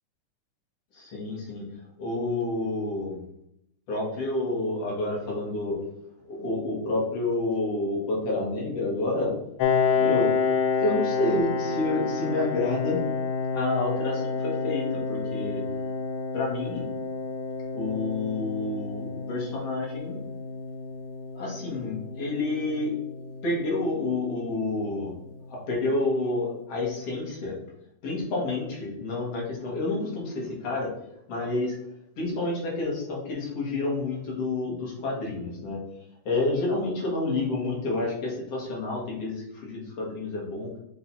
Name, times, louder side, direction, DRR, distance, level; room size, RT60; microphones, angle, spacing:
voice 1, 0.9-1.6 2.0-3.2 3.9-5.8 6.3-9.3 10.0-10.3 10.8-13.0 13.5-15.6 16.3-16.8 17.7-20.2 21.3-22.9 23.4-25.1 25.5-27.5 28.0-30.9 31.3-31.8 32.2-35.9 36.2-40.7, left 2 dB, 50° left, -3 dB, 2.9 m, -29 dB
Piano, 9.6-25.0, left 5 dB, 80° left, 2.1 m, -29 dB
6.8 x 3.8 x 4.2 m, 0.78 s
omnidirectional pair, 3.7 m